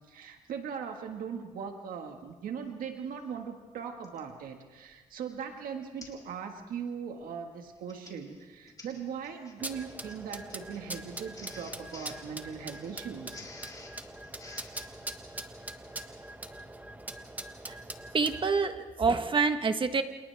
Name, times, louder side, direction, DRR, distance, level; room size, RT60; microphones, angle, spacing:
voice 1, 0.1-13.5, right 7 dB, 80° right, 4 dB, 1.8 m, -39 dB
Printer, 4.0-4.3 4.9-5.1 5.4-5.5 6.0-6.3 6.6-6.9 7.7-14.9, left 3 dB, 25° left, 4.2 m, -51 dB
sound 1, 9.6-18.5, right 1 dB, 10° right, 1.4 m, -43 dB
voice 2, 18.1-20.0, right 4 dB, 35° right, 8 dB, 1.4 m, -27 dB
29.0 x 28.5 x 3.5 m, 1.3 s
cardioid pair, 100°, 14 cm